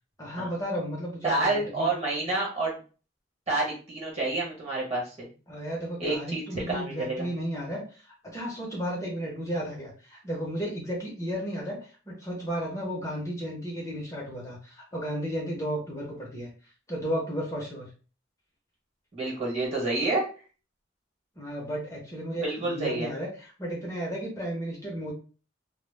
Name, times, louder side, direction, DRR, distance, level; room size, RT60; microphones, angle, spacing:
voice 1, 0.2-1.9 5.5-16.5 16.9-17.9 21.4-25.1, equal, 15° left, -3 dB, 0.6 m, -34 dB
voice 2, 1.2-2.8 3.5-5.3 6.0-7.3 19.1-20.3 22.4-23.1, right 2 dB, 35° right, -3 dB, 1.0 m, -29 dB
2.0 x 2.0 x 3.2 m, 0.37 s
head